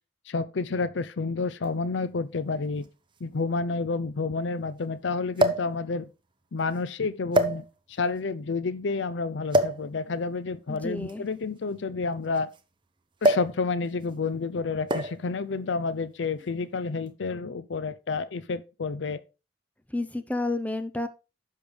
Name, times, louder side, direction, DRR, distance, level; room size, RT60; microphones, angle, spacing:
voice 1, 0.3-2.9 3.2-6.1 6.5-12.5 13.2-19.2, left 4 dB, 75° left, 0.5 m, -30 dB
sound 1, 1.6-1.7 2.8-2.9 3.2-3.3 5.4-5.8 6.6-6.8 7.3-8.0 9.5-9.9 11.0-12.6 13.2-13.6 13.9-14.1 14.9-15.3 16.2-16.5, right 1 dB, 25° right, 0.8 m, -25 dB
voice 2, 10.7-11.2 19.9-21.1, left 2 dB, 10° left, 0.7 m, -30 dB
10.5 x 6.4 x 3.3 m
head